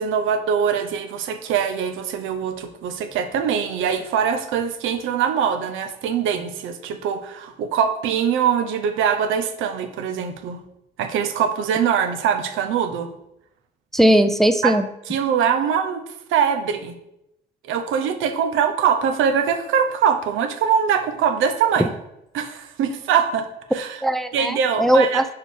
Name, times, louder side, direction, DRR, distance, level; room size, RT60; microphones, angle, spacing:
voice 1, 0.0-10.6 11.0-13.1 14.6-14.7 15.1-16.0 16.3-16.9 17.6-21.9 22.3-23.5 23.7-24.0 24.3-25.2, right 7 dB, 90° right, 7 dB, 0.7 m, -22 dB
voice 2, 13.9-14.9 21.8-21.9 24.0-25.2, right 1 dB, ahead, 9 dB, 0.4 m, -18 dB
4.9 x 4.7 x 4.9 m, 0.82 s
cardioid pair, 90°, 20 cm